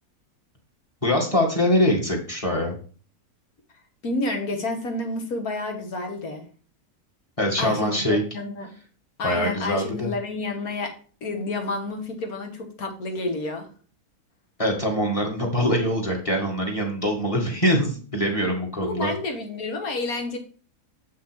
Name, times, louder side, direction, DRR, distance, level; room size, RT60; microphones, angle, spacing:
voice 1, 1.0-2.8 7.4-8.2 9.2-10.1 14.6-19.1, equal, 20° left, 1 dB, 2.1 m, -23 dB
voice 2, 4.0-6.5 7.6-8.7 9.2-10.9 11.2-13.7 18.8-20.4, left 2 dB, 65° left, 4 dB, 2.1 m, -29 dB
7.7 x 6.1 x 4.5 m, 0.40 s
omnidirectional pair, 1.7 m